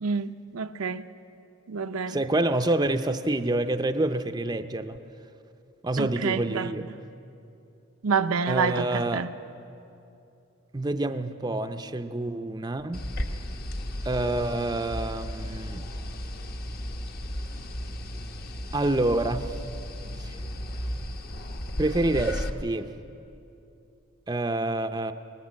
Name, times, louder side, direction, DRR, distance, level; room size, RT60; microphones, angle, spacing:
voice 1, 0.0-1.0 1.7-2.2 6.0-6.7 8.0-9.3, right 5 dB, 80° right, 0.6 m, -28 dB
voice 2, 2.1-5.0 5.8-6.9 8.5-9.2 10.7-13.0 14.0-15.9 18.7-19.5 20.2-20.3 21.8-22.9 24.3-25.1, right 2 dB, 20° right, 0.5 m, -27 dB
sound 1, 12.9-22.5, equal, 45° left, 1.0 m, -35 dB
19.5 x 19.5 x 7.4 m
head